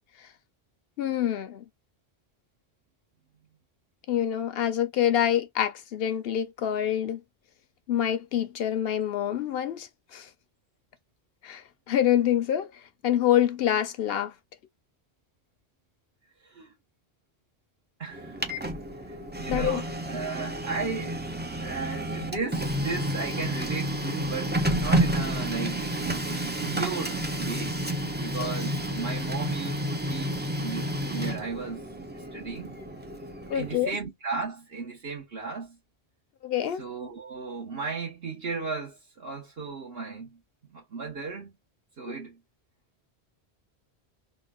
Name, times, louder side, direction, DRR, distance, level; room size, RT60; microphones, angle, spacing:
voice 1, 1.0-1.6 4.1-7.2 7.9-10.3 11.4-12.7 13.0-14.3 19.5-19.8 33.5-33.9 36.4-36.8, left 10 dB, 70° left, 0.8 m, -26 dB
voice 2, 16.4-16.7 18.0-18.8 19.1-21.2 21.6-27.8 28.2-31.9 32.1-32.8 33.5-35.8 36.7-40.4 40.7-41.5 42.0-42.4, right 4 dB, 65° right, 1.3 m, -35 dB
Printer, 18.1-33.9, right 1 dB, 15° right, 0.3 m, -30 dB
3.8 x 2.2 x 2.4 m
omnidirectional pair, 1.1 m